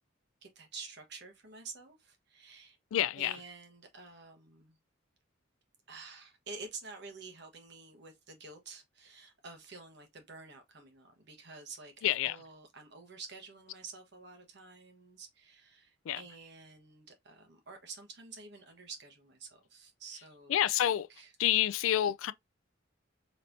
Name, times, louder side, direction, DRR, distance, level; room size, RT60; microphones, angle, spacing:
voice 1, 0.4-2.8 3.2-4.8 5.9-21.3, right 4 dB, 55° right, 1.3 m, -49 dB
voice 2, 2.9-3.4 12.0-12.4 16.0-16.2 20.5-21.1 21.4-22.3, left 12 dB, 75° left, 0.3 m, -28 dB
4.0 x 3.3 x 2.6 m
head